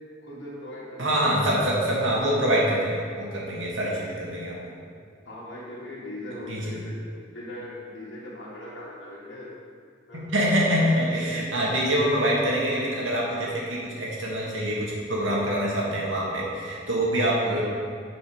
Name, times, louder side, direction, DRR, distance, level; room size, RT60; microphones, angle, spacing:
voice 1, 0.2-1.6 5.3-7.0 7.3-9.5 10.1-10.3 11.1-11.6, left 1 dB, 70° left, -7 dB, 2.2 m, -40 dB
voice 2, 1.0-4.6 6.5-6.7 10.1-17.6, equal, 85° right, -4 dB, 2.1 m, -25 dB
9.1 x 5.3 x 5.0 m, 2.1 s
head